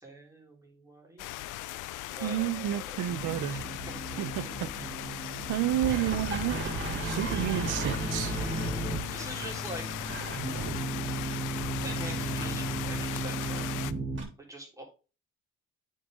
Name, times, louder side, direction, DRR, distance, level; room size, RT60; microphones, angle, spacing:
voice 1, 0.0-1.3 1.6-1.7 2.1-3.1 3.5-4.9 9.1-9.9 11.8-13.7 14.5-14.8, right 1 dB, 10° right, 3.3 m, -44 dB
sound 1, 1.2-13.9, left 15 dB, 90° left, 0.5 m, -38 dB
voice 2, 2.2-3.6 4.2-4.7 5.5-8.3, right 13 dB, 80° right, 0.7 m, -31 dB
sound 2, 3.1-14.2, right 3 dB, 40° right, 3.0 m, -36 dB
sound 3, 5.5-9.0, right 1 dB, 10° left, 2.9 m, -35 dB
8.6 x 5.4 x 3.7 m
cardioid pair, 90°, 30 cm